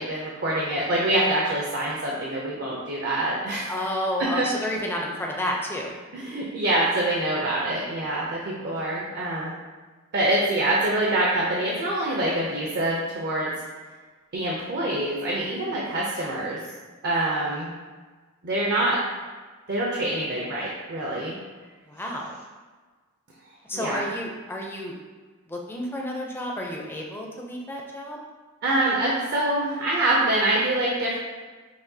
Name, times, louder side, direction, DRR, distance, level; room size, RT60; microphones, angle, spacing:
voice 1, 0.0-3.9 4.2-4.5 6.1-9.5 10.1-13.5 14.3-16.6 17.0-17.7 18.4-19.0 19.7-21.3 23.7-24.1 28.6-31.2, right 1 dB, 50° right, -4 dB, 0.6 m, -25 dB
voice 2, 3.7-6.0 8.2-8.4 21.9-22.4 23.7-24.9 25.5-28.2, left 1 dB, 10° left, -1 dB, 0.5 m, -31 dB
6.0 x 2.3 x 2.7 m, 1.4 s
head